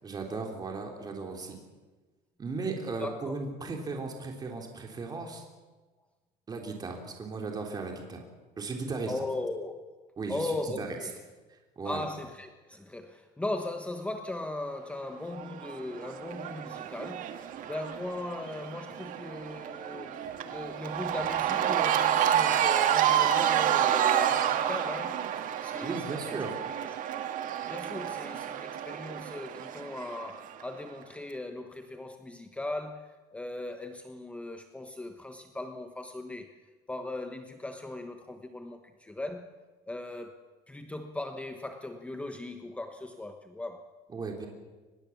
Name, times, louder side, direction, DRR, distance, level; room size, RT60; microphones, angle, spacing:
voice 1, 0.0-1.5 2.4-5.4 6.5-8.2 8.6-9.1 10.2-10.9 11.8-12.0 25.8-26.5 44.1-44.5, right 4 dB, 25° right, 2 dB, 3.3 m, -36 dB
voice 2, 3.0-3.3 9.1-10.0 10.3-11.2 11.8-26.4 26.6-27.2 27.6-36.5 36.9-39.5 39.8-40.4 40.7-43.9, left 2 dB, 10° left, 6 dB, 1.2 m, -38 dB
Cheering / Crowd, 15.3-30.6, right 10 dB, 55° right, 1.9 m, -29 dB
23.5 x 21.0 x 7.2 m, 1.3 s
cardioid pair, 150°, 16 cm